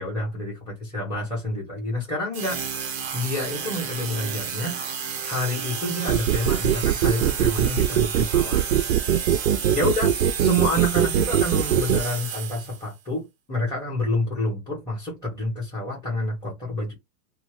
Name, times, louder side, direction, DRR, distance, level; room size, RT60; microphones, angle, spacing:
voice 1, 0.0-2.6 3.1-8.7 9.7-10.1 10.4-16.9, left 1 dB, 10° left, 1.0 m, -28 dB
sound 1, 2.3-12.9, right 7 dB, 15° right, 0.5 m, -31 dB
sound 2, 6.1-12.0, right 10 dB, 75° right, 0.6 m, -21 dB
2.7 x 2.2 x 3.2 m
hypercardioid pair, 145°, 46 cm